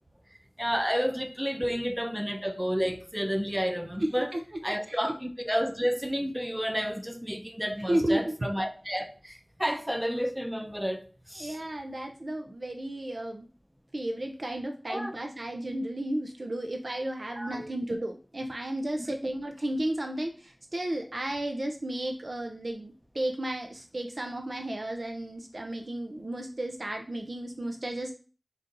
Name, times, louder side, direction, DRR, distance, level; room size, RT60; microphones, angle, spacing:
voice 1, 0.6-4.3 4.6-11.6 14.9-15.1 17.3-17.7 19.1-19.2, equal, 10° right, 0.5 m, -31 dB
voice 2, 4.0-4.4 4.9-5.0 7.9-8.3 11.4-13.5 13.9-28.1, right 1 dB, 70° right, 0.4 m, -33 dB
3.9 x 2.5 x 3.8 m
wide cardioid pair, 55°, 0 cm